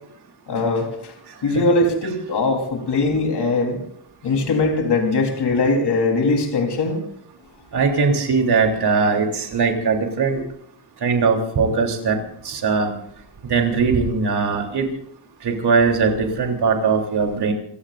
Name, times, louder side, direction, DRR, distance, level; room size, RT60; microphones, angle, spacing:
voice 1, 0.5-1.1 1.4-3.8 4.2-7.0, left 3 dB, 75° left, 1 dB, 4.0 m, -20 dB
voice 2, 7.7-10.4 11.0-12.2 12.5-12.9 13.5-14.9 15.4-17.5, right 5 dB, 70° right, 2 dB, 3.5 m, -20 dB
28.0 x 16.5 x 2.6 m, 0.69 s
wide cardioid pair, 130°, 40 cm